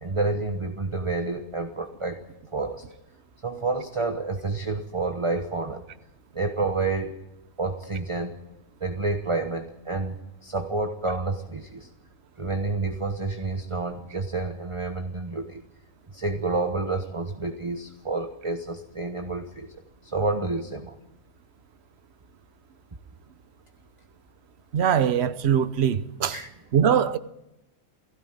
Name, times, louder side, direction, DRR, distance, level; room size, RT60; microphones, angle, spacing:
voice 1, 0.0-2.2 2.5-2.8 3.4-5.8 6.3-7.1 7.6-8.4 8.8-11.9 12.4-15.6 16.1-19.7 20.1-21.0 26.3-26.5, right 3 dB, 25° right, 1.2 m, -29 dB
voice 2, 24.7-26.3 26.7-27.2, right 8 dB, 60° right, 1.1 m, -22 dB
19.0 x 16.5 x 9.3 m
omnidirectional pair, 1.3 m